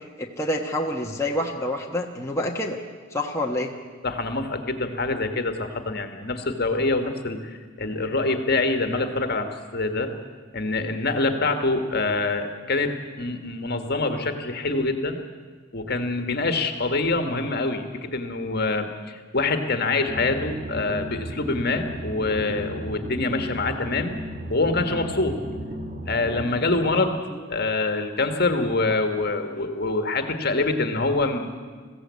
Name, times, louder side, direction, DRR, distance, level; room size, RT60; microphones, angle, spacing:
voice 1, 0.2-2.8 3.1-3.7 27.3-27.5, left 1 dB, 15° left, 0 dB, 1.2 m, -27 dB
voice 2, 4.0-10.1 10.5-15.2 15.7-24.1 24.5-25.4 26.1-27.2 27.5-31.5, left 3 dB, 50° left, 7 dB, 1.6 m, -25 dB
sound 1, 20.1-26.5, right 1 dB, 35° right, 1.4 m, -34 dB
21.5 x 15.5 x 8.3 m, 1.5 s
head